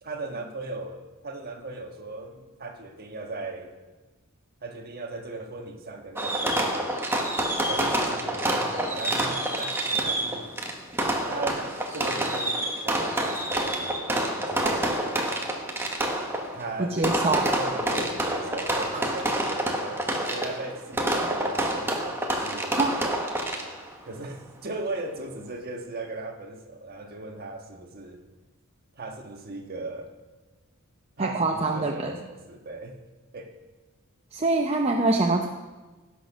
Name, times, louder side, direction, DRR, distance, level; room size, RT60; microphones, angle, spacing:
voice 1, 0.0-3.7 4.6-6.9 7.6-10.6 11.3-15.3 16.5-17.1 17.5-22.7 24.0-28.2 28.9-30.1 31.2-33.0 33.3-33.5, right 2 dB, 45° right, 3 dB, 1.5 m, -38 dB
Fireworks, 6.2-23.9, right 1 dB, 10° right, 1.2 m, -28 dB
voice 2, 16.8-17.6 22.8-23.0 31.2-32.1 34.3-35.5, right 2 dB, 30° right, 2 dB, 0.7 m, -24 dB
16.0 x 6.4 x 6.1 m, 1.2 s
head